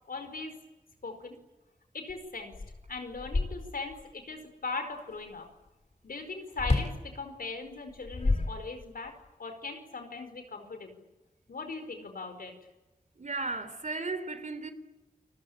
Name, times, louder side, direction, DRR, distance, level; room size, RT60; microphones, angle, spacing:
voice 1, 0.1-0.6 1.0-1.4 1.9-2.5 2.9-5.5 6.0-10.9 11.5-12.6, left 3 dB, 85° left, 4.8 m, -39 dB
sound 1, 2.1-2.2 2.5-4.0 6.6-7.0 7.9-9.1, left 3 dB, 50° left, 3.3 m, -30 dB
voice 2, 13.2-14.7, right 3 dB, 55° right, 3.3 m, -35 dB
29.0 x 21.0 x 8.7 m
wide cardioid pair, 55°, 15 cm